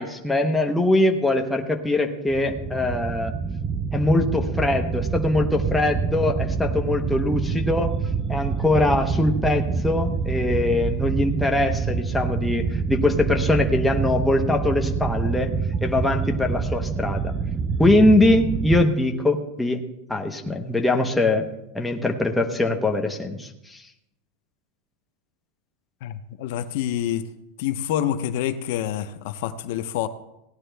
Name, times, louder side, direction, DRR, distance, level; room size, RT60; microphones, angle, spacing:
voice 1, 0.0-3.3 3.9-7.9 8.3-15.5 15.8-17.3 17.8-19.8 20.1-21.4 21.7-23.8, left 2 dB, 5° left, 2 dB, 0.9 m, -22 dB
sound 1, 2.3-18.8, right 5 dB, 15° right, 0.4 m, -26 dB
voice 2, 26.0-27.3 27.6-30.1, left 11 dB, 55° left, 11 dB, 0.6 m, -27 dB
17.0 x 10.5 x 3.4 m, 0.88 s
supercardioid pair, 170°, 0 cm